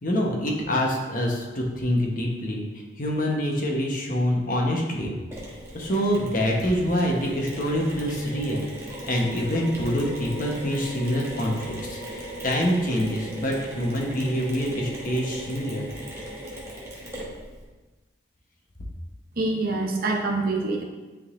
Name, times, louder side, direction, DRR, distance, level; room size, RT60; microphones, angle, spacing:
voice 1, 0.0-2.7 3.0-5.1 5.7-8.7 9.1-15.8, equal, 45° left, -1 dB, 1.0 m, -26 dB
Mechanisms, 5.3-17.6, right 1 dB, 15° right, 1.1 m, -38 dB
voice 2, 19.4-20.8, right 2 dB, 50° right, 1 dB, 0.8 m, -25 dB
9.8 x 3.8 x 2.5 m, 1.2 s
head